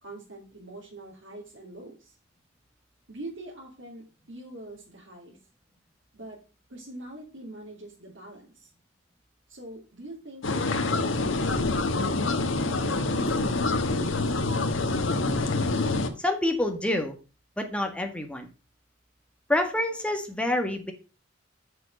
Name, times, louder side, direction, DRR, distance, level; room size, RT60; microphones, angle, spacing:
voice 1, 0.0-2.2 3.1-5.4 6.1-6.4 6.7-8.7 9.5-14.7, right 2 dB, 85° right, -4 dB, 3.0 m, -44 dB
sound 1, 10.4-16.1, left 3 dB, 90° left, 1.3 m, -26 dB
voice 2, 16.2-17.1 17.6-18.5 19.5-20.9, left 1 dB, 5° left, 4 dB, 1.6 m, -27 dB
6.8 x 6.6 x 6.1 m, 0.33 s
head